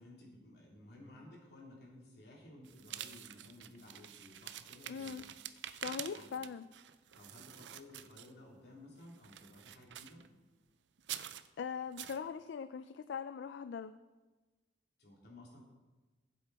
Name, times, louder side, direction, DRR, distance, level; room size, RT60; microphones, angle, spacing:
voice 1, 0.0-5.1 6.1-6.3 7.2-10.2 15.0-15.6, left 1 dB, 65° left, -3 dB, 3.2 m, -55 dB
sound 1, 2.6-8.6 9.0-10.3 11.0-11.5 12.0-12.2, right 11 dB, 85° right, 0.5 m, -47 dB
voice 2, 4.9-5.3 5.8-6.7 11.6-13.9, left 6 dB, 80° left, 12 dB, 0.3 m, -41 dB
14.5 x 7.9 x 4.1 m, 1.2 s
head